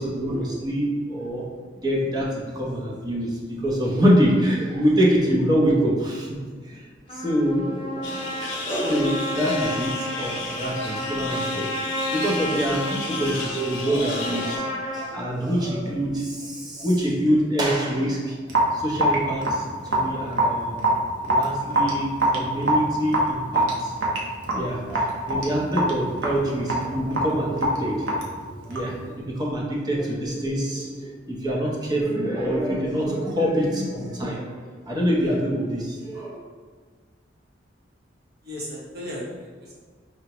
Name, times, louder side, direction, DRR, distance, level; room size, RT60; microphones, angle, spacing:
voice 1, 0.0-1.5 1.8-6.4 6.6-6.9 7.1-8.2 8.5-18.4 18.7-20.9 21.2-23.9 24.5-34.6 34.9-36.4, equal, 20° right, -4 dB, 0.7 m, -25 dB
Trumpet, 7.1-15.1, equal, 30° left, 0.7 m, -32 dB
sound 1, 8.0-14.6, left 3 dB, 70° left, 0.5 m, -34 dB
Raindrop / Drip, 18.5-29.0, right 1 dB, 90° right, 0.7 m, -24 dB
voice 2, 38.4-39.7, left 1 dB, 55° right, -4 dB, 0.9 m, -35 dB
4.7 x 2.1 x 2.9 m, 1.5 s
head